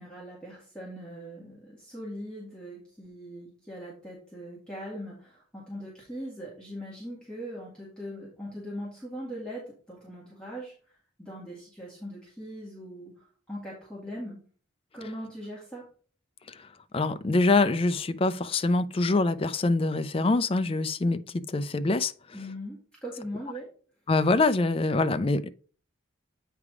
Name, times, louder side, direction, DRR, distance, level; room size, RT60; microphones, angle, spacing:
voice 1, 0.0-14.4 14.9-15.9 22.3-23.7, equal, 5° left, 1.8 m, -40 dB
voice 2, 16.9-22.1 24.1-25.5, left 3 dB, 25° left, 0.4 m, -25 dB
8.5 x 3.4 x 4.8 m
head